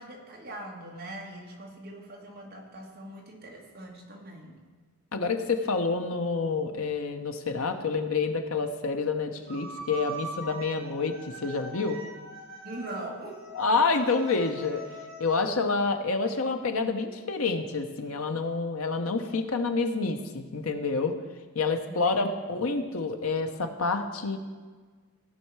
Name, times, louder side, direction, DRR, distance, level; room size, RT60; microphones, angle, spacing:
voice 1, 0.0-4.6 12.6-13.4 21.9-22.3, right 1 dB, 45° right, 0 dB, 1.8 m, -41 dB
voice 2, 5.1-11.2 11.4-12.0 13.6-14.8 15.2-21.1 21.5-24.4, left 4 dB, 75° left, 6 dB, 0.9 m, -28 dB
sound 1, 9.5-15.4, right 1 dB, 65° right, 3.9 m, -42 dB
17.0 x 5.6 x 4.8 m, 1.5 s
head